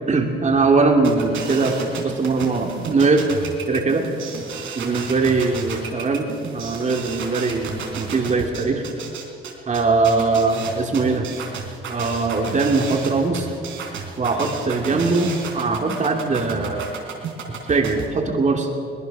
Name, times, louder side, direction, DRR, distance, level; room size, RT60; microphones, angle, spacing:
voice 1, 0.1-3.3 3.7-4.1 4.8-6.3 6.5-8.8 9.7-11.2 11.9-13.5 14.2-16.9 17.7-18.7, right 3 dB, 35° right, 2 dB, 2.8 m, -21 dB
sound 1, 1.0-18.1, right 6 dB, 80° right, 3.6 m, -32 dB
22.5 x 19.0 x 6.1 m, 2.3 s
cardioid pair, 90°, 20 cm